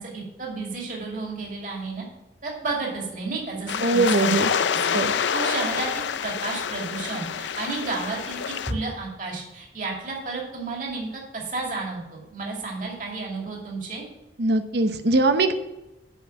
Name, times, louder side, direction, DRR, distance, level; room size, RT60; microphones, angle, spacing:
voice 1, 0.0-2.0 2.4-4.3 4.8-14.0, right 3 dB, 45° right, -2 dB, 2.4 m, -32 dB
sound 1, 3.7-8.7, left 7 dB, 80° left, 0.4 m, -27 dB
voice 2, 3.8-4.5 4.9-5.1 14.4-15.5, right 2 dB, 65° right, 8 dB, 0.8 m, -21 dB
8.1 x 6.3 x 7.2 m, 0.97 s
head